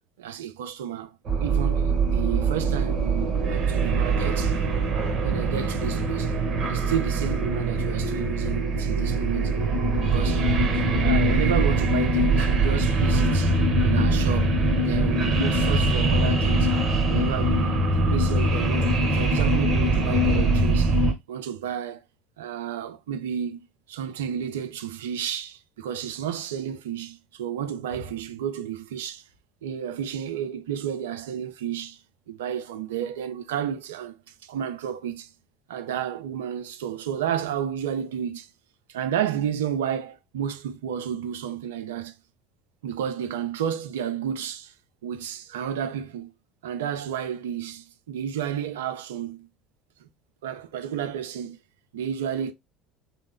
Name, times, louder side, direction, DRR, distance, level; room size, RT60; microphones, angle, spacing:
voice 1, 0.2-4.5 5.2-6.3 6.7-9.6 10.0-10.5 11.0-14.6 14.9-16.7 17.1-21.0 21.3-22.0 22.4-23.6 23.9-29.2 29.6-32.0 32.3-34.2 34.4-35.3 35.7-38.5 38.9-42.1 42.8-44.7 45.0-46.3 46.6-49.5 50.0-50.1 50.4-51.6 51.9-52.5, right 9 dB, 65° right, 0.4 m, -31 dB
sound 1, 1.3-21.1, right 2 dB, 45° right, 0.9 m, -22 dB
3.0 x 2.1 x 3.5 m
figure-of-eight pair, 65°, 0 cm